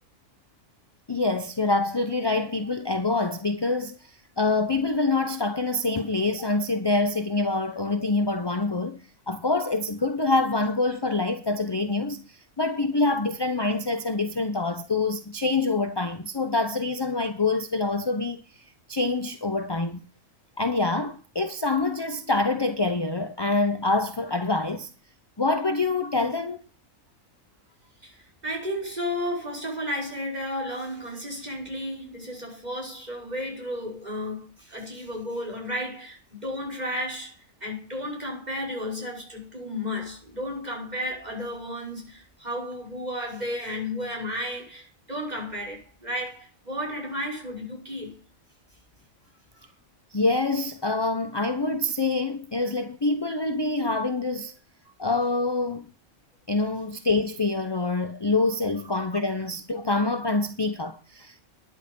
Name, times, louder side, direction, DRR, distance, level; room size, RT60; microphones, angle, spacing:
voice 1, 1.1-18.4 18.9-20.0 20.6-24.9 25.4-26.6 50.1-54.5 55.0-55.8 56.5-61.4, left 3 dB, 25° left, 0.7 m, -26 dB
voice 2, 28.0-37.3 37.6-48.2 54.9-55.0, left 1 dB, 30° right, 5.6 m, -33 dB
12.0 x 11.0 x 5.5 m
omnidirectional pair, 1.4 m